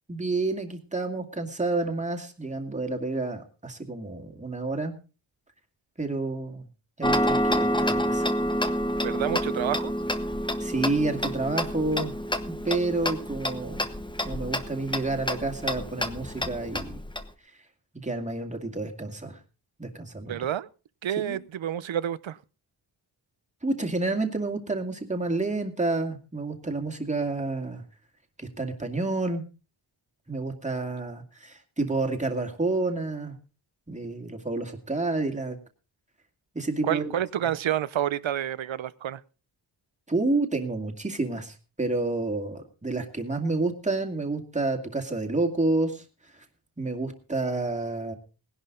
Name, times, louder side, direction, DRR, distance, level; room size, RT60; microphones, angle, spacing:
voice 1, 0.1-5.0 6.0-6.7 7.0-8.3 10.6-12.1 12.5-13.8 14.2-17.0 18.0-19.4 19.8-20.4 21.2-21.4 23.6-27.8 28.4-29.4 30.3-33.3 33.9-35.6 36.5-37.1 40.1-46.0 46.8-48.1, right 2 dB, 15° right, 3 dB, 2.1 m, -29 dB
Tick-tock, 7.0-17.2, equal, 10° left, 1.0 m, -28 dB
voice 2, 9.0-9.9 20.3-20.7 21.0-22.4 36.8-39.2, right 10 dB, 80° right, 18 dB, 0.8 m, -29 dB
19.0 x 11.0 x 3.8 m, 0.33 s
wide cardioid pair, 135°, 45 cm